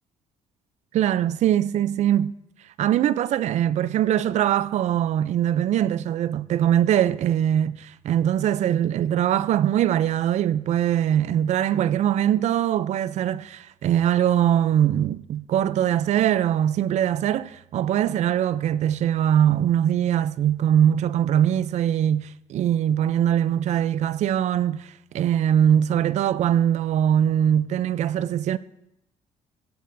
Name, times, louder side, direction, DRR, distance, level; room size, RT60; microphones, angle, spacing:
voice 1, 0.9-2.3 2.8-7.8 8.0-28.6, right 10 dB, 60° right, 0.5 m, -22 dB
15.5 x 15.0 x 2.6 m
cardioid pair, 130°, 13 cm